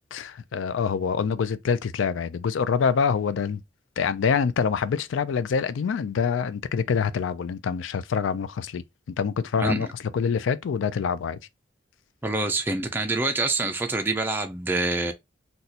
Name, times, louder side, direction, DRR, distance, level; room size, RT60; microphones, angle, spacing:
voice 1, 0.1-3.6 4.0-9.9 10.1-11.4, left 6 dB, 90° left, 0.4 m, -26 dB
voice 2, 12.2-15.1, right 2 dB, 10° right, 0.3 m, -26 dB
4.0 x 2.2 x 2.7 m
head